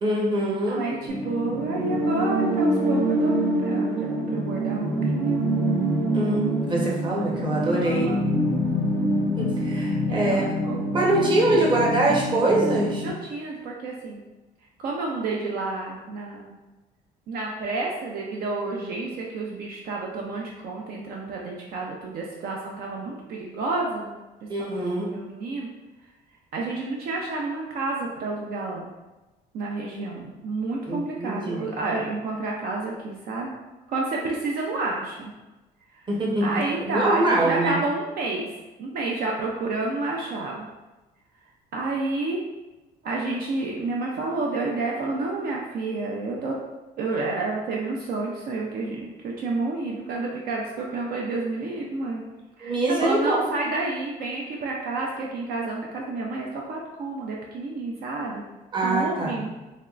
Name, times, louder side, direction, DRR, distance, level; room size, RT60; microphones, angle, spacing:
voice 1, 0.0-0.8 6.1-8.1 9.4-10.5 10.9-13.0 24.5-25.1 30.9-31.7 36.1-36.5 36.9-37.8 52.6-53.5 58.7-59.5, right 2 dB, 25° right, -3 dB, 0.9 m, -24 dB
voice 2, 0.7-3.3 3.6-5.4 7.1-8.3 10.1-11.1 11.4-11.8 13.0-14.2 14.8-16.5 17.3-24.1 24.6-24.7 25.0-25.7 26.5-28.9 29.5-33.5 33.9-35.3 36.4-38.5 38.8-40.7 41.7-42.4 43.0-46.6 47.0-52.2 52.6-58.4 58.8-59.5, right 3 dB, 65° right, -1 dB, 0.5 m, -30 dB
sound 1, 1.1-13.1, right 1 dB, 85° right, 1.3 m, -25 dB
3.4 x 3.1 x 2.4 m, 1.1 s
cardioid pair, 110°, 17 cm